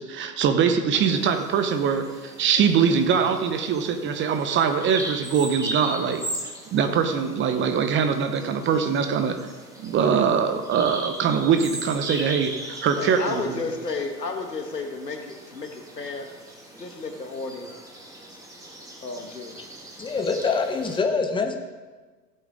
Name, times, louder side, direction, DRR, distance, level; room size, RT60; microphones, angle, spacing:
voice 1, 0.0-6.3 6.7-9.4 9.8-13.5, right 6 dB, 25° right, 8 dB, 0.9 m, -23 dB
Bird vocalization bird call bird song, 1.0-21.0, right 1 dB, 5° right, 2.3 m, -39 dB
voice 2, 13.0-17.7 19.0-19.6, left 3 dB, 85° left, 5 dB, 1.6 m, -33 dB
voice 3, 20.0-21.6, left 4 dB, 10° left, 5 dB, 1.0 m, -25 dB
16.0 x 8.3 x 3.7 m, 1.3 s
figure-of-eight pair, 90°, 48 cm